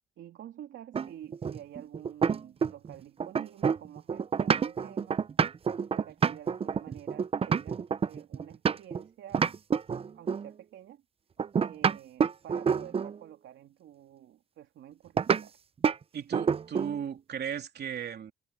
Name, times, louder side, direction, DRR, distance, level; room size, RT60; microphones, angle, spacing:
voice 1, 0.2-5.2 5.9-9.5 10.1-11.0 11.6-15.6, right 11 dB, 80° right, 2.8 m, -49 dB
sound 1, 0.9-2.9 3.2-9.0 9.3-10.5 11.4-13.2 15.2-15.4 15.8-16.0 16.3-17.0, right 6 dB, 30° right, 0.5 m, -28 dB
voice 2, 16.1-18.3, right 8 dB, 55° right, 3.1 m, -36 dB
cardioid pair, 90°, 20 cm